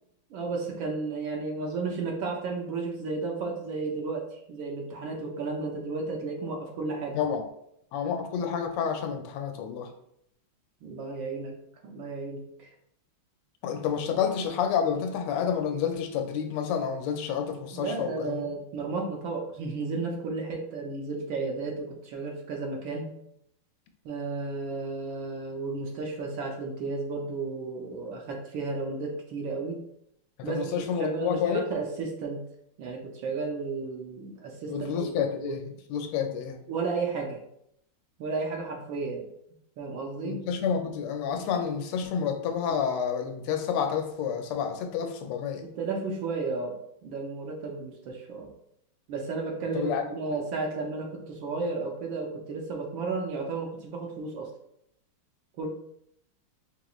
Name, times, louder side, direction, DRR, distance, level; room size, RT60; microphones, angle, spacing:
voice 1, 0.3-7.2 10.8-11.5 11.8-12.7 17.7-23.1 24.0-29.8 30.4-30.6 31.0-32.4 32.8-35.1 35.4-35.5 36.7-37.4 38.2-39.2 39.8-40.4 45.6-46.7 47.0-48.5 49.1-54.5 55.5-55.7, right 3 dB, 70° right, 1 dB, 1.3 m, -33 dB
voice 2, 7.9-9.9 13.6-18.5 30.4-31.6 34.7-36.6 40.2-45.7 49.7-50.0, left 7 dB, 85° left, 6 dB, 1.5 m, -29 dB
4.8 x 3.0 x 2.4 m, 0.75 s
omnidirectional pair, 2.4 m